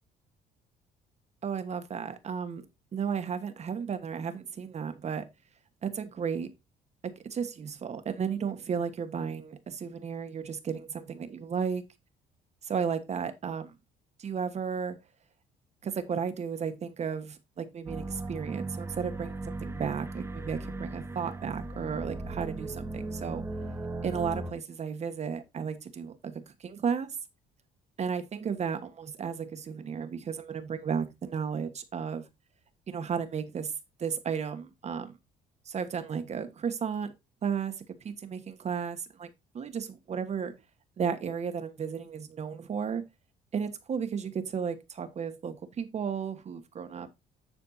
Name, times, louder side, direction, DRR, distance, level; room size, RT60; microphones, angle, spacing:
voice 1, 1.4-2.6 2.9-5.3 5.8-6.5 7.0-11.8 12.6-13.7 14.2-15.0 15.8-23.5 24.0-27.2 28.0-32.3 32.9-33.7 34.0-35.2 35.6-37.1 37.4-40.6 41.0-43.1 43.5-47.1, right 6 dB, 40° right, 1.3 m, -34 dB
sound 1, 17.9-24.5, right 2 dB, 15° right, 1.2 m, -37 dB
10.0 x 4.4 x 4.1 m
cardioid pair, 110°, 17 cm